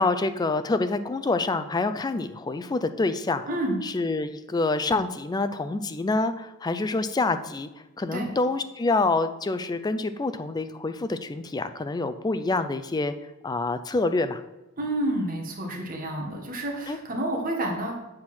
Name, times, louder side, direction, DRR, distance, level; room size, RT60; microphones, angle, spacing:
voice 1, 0.0-3.4 3.8-7.7 8.0-13.1 13.4-14.4 16.9-17.0, left 3 dB, 20° left, 11 dB, 0.3 m, -26 dB
voice 2, 3.5-3.8 8.1-8.3 14.8-17.9, right 1 dB, 40° right, 1 dB, 1.4 m, -29 dB
7.5 x 4.3 x 6.0 m, 0.99 s
head